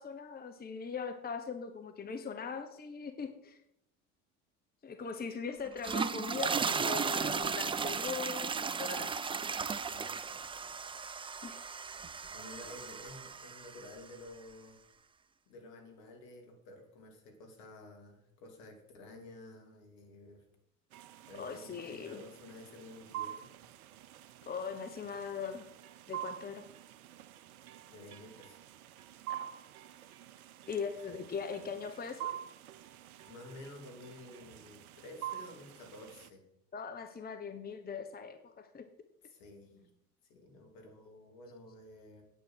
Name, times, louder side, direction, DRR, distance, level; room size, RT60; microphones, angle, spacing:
voice 1, 0.0-3.6 4.8-9.1 11.4-11.6 21.4-22.2 24.5-25.7 26.1-26.6 29.3-29.6 30.7-32.3 36.7-38.9, left 5 dB, 20° left, 7 dB, 1.1 m, -40 dB
sound 1, 5.7-14.0, right 5 dB, 15° right, 0.4 m, -35 dB
voice 2, 9.8-10.9 12.3-14.8 15.5-20.4 21.3-23.5 27.9-28.6 31.1-31.2 33.3-36.4 39.2-39.9 40.2-42.2, left 2 dB, 65° left, 2 dB, 3.1 m, -52 dB
sound 2, 20.9-36.3, right 12 dB, 75° right, 0.8 m, -47 dB
9.0 x 8.8 x 6.4 m, 0.80 s
hypercardioid pair, 65°, 44 cm